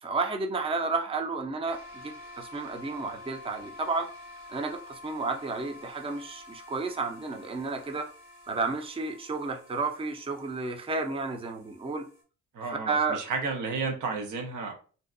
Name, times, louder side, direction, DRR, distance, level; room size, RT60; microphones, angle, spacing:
voice 1, 0.0-4.1 4.5-8.1 8.5-12.1 12.9-13.2, right 3 dB, 20° right, 4 dB, 0.5 m, -32 dB
sound 1, 1.7-12.2, left 2 dB, 70° right, 1.0 m, -49 dB
voice 2, 12.5-14.7, right 4 dB, 85° right, 3 dB, 0.7 m, -32 dB
2.6 x 2.2 x 2.4 m, 0.38 s
cardioid pair, 90°, 30 cm